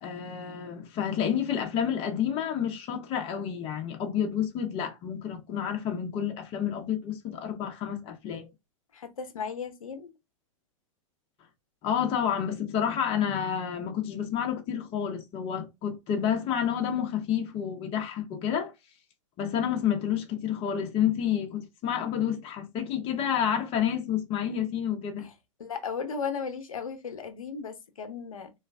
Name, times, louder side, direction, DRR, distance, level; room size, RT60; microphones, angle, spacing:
voice 1, 0.0-8.5 11.8-18.7 19.4-25.3, left 9 dB, 35° left, 0.8 m, -29 dB
voice 2, 8.9-10.1 25.2-25.3 25.6-28.5, left 6 dB, 90° left, 0.8 m, -36 dB
3.2 x 2.3 x 3.3 m
hypercardioid pair, 120°, 17 cm